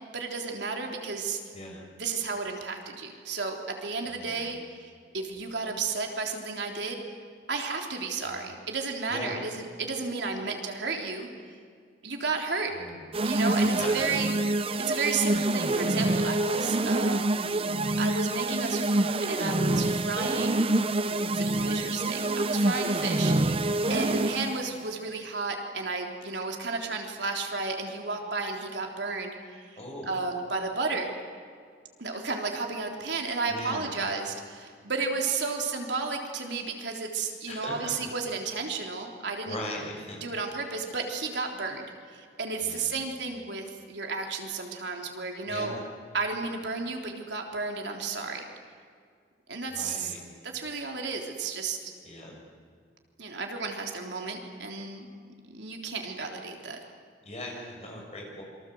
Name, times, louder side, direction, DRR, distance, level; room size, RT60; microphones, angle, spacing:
voice 1, 0.1-1.4 2.0-7.0 7.5-11.3 12.0-12.7 13.2-14.3 14.8-17.4 18.0-20.7 21.3-29.8 30.1-31.1 32.0-39.6 40.2-41.8 42.1-45.7 46.1-48.4 49.5-50.1 50.4-51.9 53.2-55.1 55.4-56.8, right 4 dB, 70° right, 2 dB, 3.5 m, -33 dB
voice 2, 4.0-4.5 8.2-8.5 9.1-9.4 12.7-13.0 13.6-14.2 23.9-24.0 29.8-30.1 33.5-34.2 37.5-37.7 39.4-40.2 42.6-42.9 45.5-45.8 49.7-50.2 52.0-52.3 57.2-58.4, left 1 dB, 35° left, -1 dB, 6.8 m, -39 dB
sound 1, 13.1-24.7, right 2 dB, 30° right, 0.7 m, -26 dB
28.0 x 24.0 x 7.9 m, 2.1 s
head